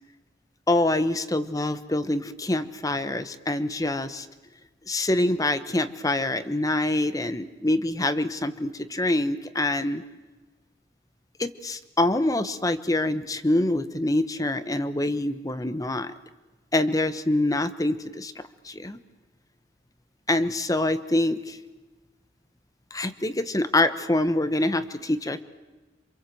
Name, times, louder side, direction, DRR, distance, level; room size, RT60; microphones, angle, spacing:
voice 1, 0.7-4.3 4.9-10.0 11.4-16.1 16.7-18.3 18.6-19.0 20.3-21.6 22.9-25.4, left 1 dB, 20° left, 11 dB, 1.1 m, -25 dB
28.0 x 26.5 x 7.9 m, 1.2 s
head